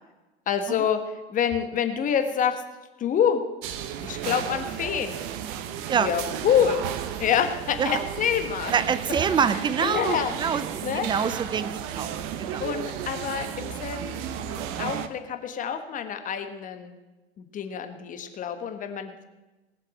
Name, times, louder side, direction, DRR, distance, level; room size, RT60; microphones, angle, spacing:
voice 1, 0.5-1.0 1.3-2.6 3.0-3.4 4.0-5.2 6.0-6.8 7.2-8.7 9.8-10.3 10.8-11.1 12.6-14.2 14.6-16.9 17.4-19.3, left 8 dB, 25° left, 8 dB, 1.4 m, -27 dB
sound 1, 3.6-15.1, right 9 dB, 40° right, 1.2 m, -33 dB
voice 2, 8.7-12.6, right 6 dB, 15° right, 15 dB, 0.7 m, -26 dB
19.0 x 7.5 x 7.7 m, 1.1 s
figure-of-eight pair, 85°, 32 cm